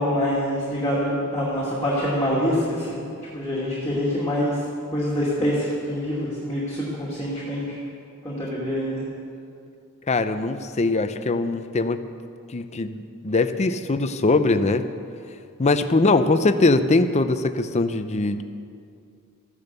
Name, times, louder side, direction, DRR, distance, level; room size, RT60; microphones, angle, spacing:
voice 1, 0.0-4.6 4.9-7.8 8.2-9.0, equal, 15° left, -8 dB, 2.4 m, -25 dB
voice 2, 10.1-12.0 12.5-14.9 15.6-18.4, left 3 dB, 30° left, 9 dB, 0.6 m, -21 dB
14.5 x 10.5 x 6.7 m, 2.4 s
head